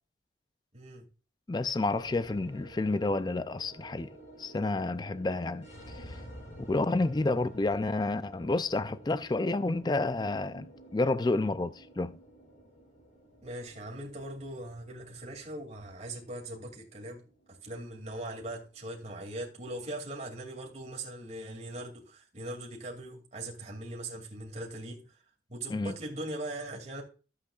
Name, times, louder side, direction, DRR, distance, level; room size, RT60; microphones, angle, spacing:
voice 1, 0.7-1.0 13.4-17.2 17.5-25.2 25.5-27.0, right 1 dB, 35° right, 2.4 m, -40 dB
voice 2, 1.5-4.1 4.4-6.1 6.7-12.2 25.7-25.9, left 2 dB, 20° left, 0.3 m, -30 dB
sound 1, 1.9-20.3, right 1 dB, 35° left, 2.8 m, -51 dB
12.5 x 8.2 x 2.4 m
head